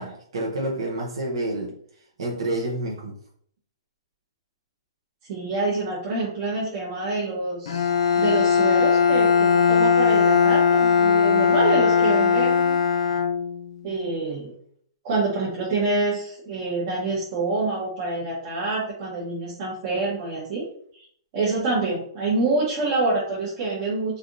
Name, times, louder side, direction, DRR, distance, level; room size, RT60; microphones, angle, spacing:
voice 1, 0.0-1.7 2.2-3.2, right 1 dB, 70° right, -2 dB, 0.7 m, -28 dB
voice 2, 5.3-7.9 8.2-12.8 13.8-14.5 15.0-20.6 20.9-21.0 21.3-24.2, right 3 dB, 35° right, -7 dB, 0.9 m, -26 dB
Bowed string instrument, 7.7-13.8, left 6 dB, 65° left, 0.4 m, -19 dB
3.3 x 2.7 x 2.5 m, 0.63 s
hypercardioid pair, 165°, 3 cm